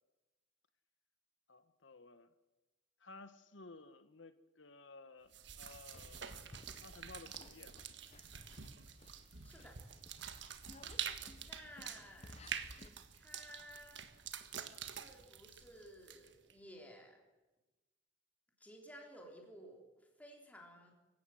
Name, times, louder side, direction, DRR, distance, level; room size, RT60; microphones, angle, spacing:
voice 1, 1.5-2.3 3.0-6.3 6.8-7.8, left 3 dB, 75° left, 12 dB, 1.2 m, -56 dB
sound 1, 5.3-16.5, right 8 dB, 65° right, 1.5 m, -47 dB
sound 2, 5.9-12.9, left 2 dB, 35° left, 1.0 m, -59 dB
voice 2, 9.4-9.8 11.4-12.4 13.1-14.0 14.8-17.2 18.6-20.9, equal, 10° left, 0 dB, 3.7 m, -56 dB
25.0 x 16.0 x 7.7 m, 1.1 s
head